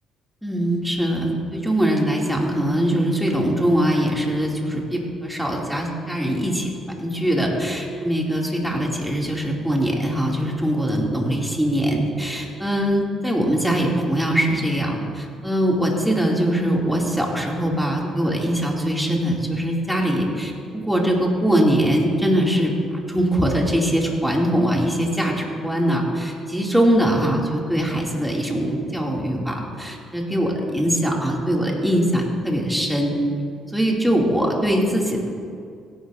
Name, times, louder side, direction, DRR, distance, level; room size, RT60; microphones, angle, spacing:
voice 1, 0.4-6.7 7.0-33.1 33.7-35.3, equal, ahead, -2 dB, 2.7 m, -22 dB
16.5 x 11.0 x 2.7 m, 2.3 s
supercardioid pair, 60°, 0 cm